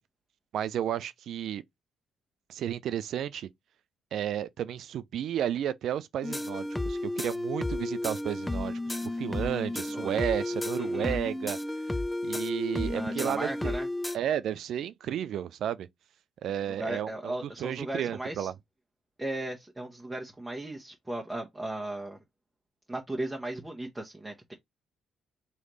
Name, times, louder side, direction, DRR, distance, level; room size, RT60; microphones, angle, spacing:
voice 1, 0.5-1.6 2.5-3.5 4.1-11.6 12.2-13.7 14.1-15.9 16.4-18.5, right 10 dB, 65° right, 0.4 m, -32 dB
sound 1, 6.2-14.2, left 1 dB, 10° left, 0.5 m, -32 dB
voice 2, 10.8-11.2 12.9-13.9 16.7-18.5 19.2-22.2 22.9-24.5, right 1 dB, 15° right, 1.1 m, -36 dB
3.2 x 3.1 x 4.0 m
hypercardioid pair, 45°, 0 cm